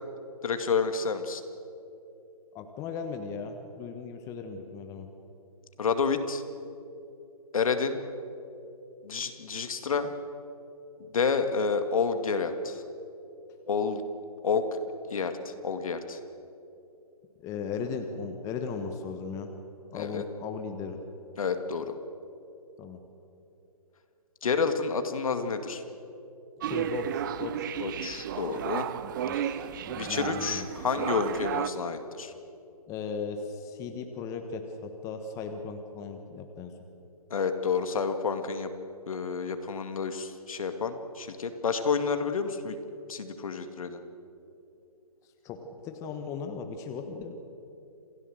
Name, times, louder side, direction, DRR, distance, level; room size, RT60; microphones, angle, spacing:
voice 1, 0.4-1.4 5.8-6.4 7.5-8.0 9.0-10.1 11.1-12.8 13.7-14.0 14.4-14.8 15.1-16.2 19.9-20.2 21.4-21.9 24.4-25.8 27.8-28.9 30.0-32.3 37.3-38.7 39.1-42.8 43.1-44.0, left 5 dB, 60° left, 8 dB, 2.2 m, -29 dB
voice 2, 2.5-5.1 15.2-15.3 17.4-19.5 19.9-21.0 22.8-23.0 26.6-27.7 29.2-29.6 29.8-30.7 32.9-36.7 45.2-47.5, left 5 dB, 15° left, 5 dB, 1.2 m, -37 dB
sound 1, 26.6-31.7, right 10 dB, 35° right, 0.7 m, -33 dB
27.5 x 16.0 x 7.9 m, 2.8 s
hypercardioid pair, 150°, 19 cm